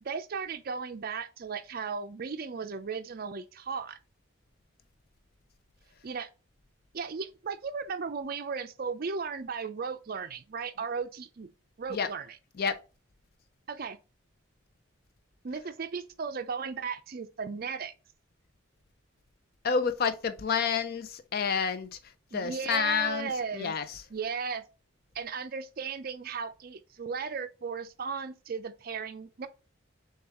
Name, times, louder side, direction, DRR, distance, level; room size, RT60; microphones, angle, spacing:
voice 1, 0.0-4.0 6.0-6.3 6.9-11.5 11.8-12.4 13.7-14.0 15.4-17.9 22.3-23.8 24.1-24.7 25.1-29.5, right 5 dB, 45° right, 0.4 m, -36 dB
voice 2, 19.6-22.0 22.3-24.0, left 6 dB, 45° left, 0.5 m, -29 dB
6.5 x 2.3 x 2.9 m
head